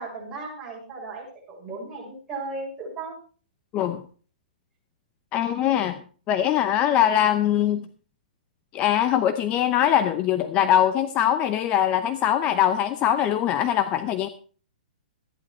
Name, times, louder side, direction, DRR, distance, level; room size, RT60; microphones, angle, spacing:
voice 1, 0.0-3.1, right 3 dB, 15° right, -3 dB, 6.4 m, -36 dB
voice 2, 5.3-7.9 8.7-14.3, left 10 dB, 25° left, 10 dB, 0.7 m, -22 dB
13.5 x 11.0 x 4.4 m, 0.40 s
hypercardioid pair, 155°, 5 cm